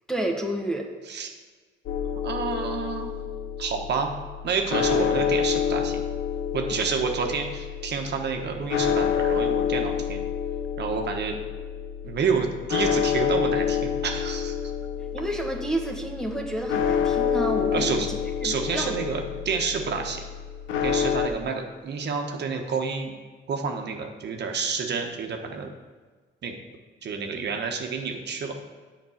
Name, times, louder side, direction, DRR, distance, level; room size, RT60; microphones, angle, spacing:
voice 1, 0.1-0.9 15.1-18.2 18.4-19.2, right 1 dB, 5° left, 1 dB, 1.4 m, -30 dB
sound 1, 1.9-21.3, left 8 dB, 80° left, 0.9 m, -28 dB
voice 2, 2.1-3.1 3.6-4.1 4.4-6.0 6.5-10.2 10.8-11.4 12.0-14.7 17.7-18.1 18.4-20.3 20.8-23.1 23.5-25.7 26.4-26.5 27.0-28.5, right 5 dB, 60° right, 3 dB, 1.2 m, -29 dB
7.9 x 5.3 x 7.2 m, 1.4 s
cardioid pair, 90°, 20 cm